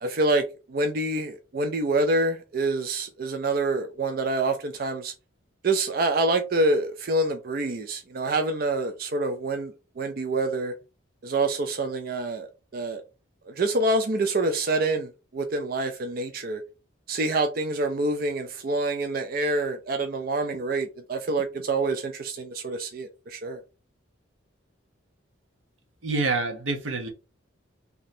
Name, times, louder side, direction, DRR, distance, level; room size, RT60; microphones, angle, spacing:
voice 1, 0.0-5.1 5.6-10.7 11.2-12.5 12.7-13.0 13.5-16.6 17.1-23.6, right 2 dB, 50° right, 0.4 m, -26 dB
voice 2, 26.0-27.1, right 3 dB, 80° right, 0.9 m, -27 dB
3.1 x 2.7 x 4.1 m
head